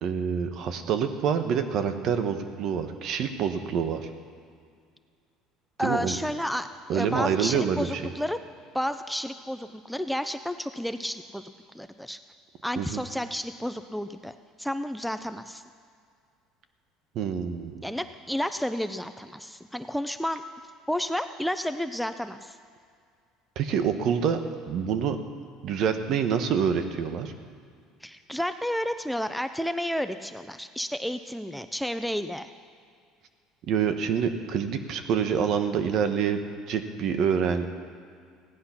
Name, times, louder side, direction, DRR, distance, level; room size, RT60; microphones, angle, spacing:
voice 1, 0.0-4.1 5.8-6.2 6.9-8.0 12.8-13.0 17.1-17.7 23.6-24.4 24.7-25.2 25.6-27.3 33.7-36.4 36.7-37.7, right 7 dB, 55° right, 8 dB, 1.2 m, -26 dB
voice 2, 5.8-8.4 8.7-11.5 11.7-12.2 12.6-15.6 17.8-20.4 20.9-22.6 28.0-32.5, equal, ahead, 9 dB, 0.4 m, -31 dB
16.5 x 10.0 x 5.9 m, 2.2 s
cardioid pair, 120°, 0 cm